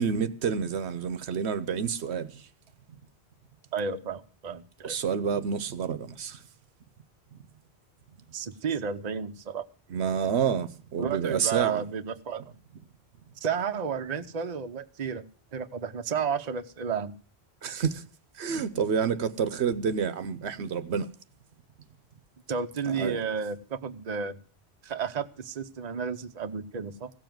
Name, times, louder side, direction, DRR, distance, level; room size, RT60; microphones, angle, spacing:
voice 1, 0.0-2.5 4.8-6.4 9.9-11.8 17.6-18.0 18.3-21.1 22.9-23.2, right 7 dB, 75° right, 1.1 m, -29 dB
voice 2, 3.7-5.0 8.3-9.6 11.0-12.4 13.4-15.2 15.5-17.1 22.5-24.4 24.8-27.1, right 6 dB, 40° right, 0.8 m, -32 dB
16.0 x 7.1 x 7.6 m
omnidirectional pair, 1.1 m